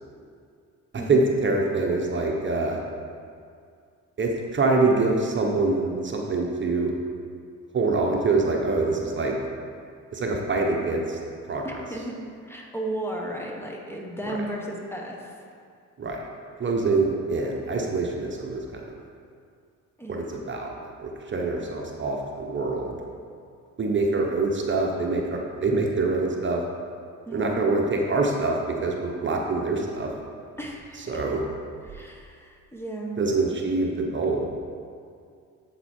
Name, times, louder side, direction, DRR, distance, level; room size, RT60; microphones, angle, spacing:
voice 1, 1.1-2.8 4.2-6.9 7.7-9.4 10.1-11.2 11.5-11.6 14.3-14.4 16.0-16.2 16.6-19.0 20.1-20.7 21.0-23.0 23.8-26.6 27.3-30.1 31.1-31.4 33.2-34.5, right 3 dB, 40° right, 0 dB, 1.1 m, -25 dB
voice 2, 11.6-12.2 12.4-15.3 20.0-20.4 27.3-27.6 30.6-31.2 31.9-33.4, right 1 dB, 10° left, -1 dB, 1.3 m, -35 dB
8.0 x 7.6 x 4.5 m, 2.3 s
cardioid pair, 90°, 30 cm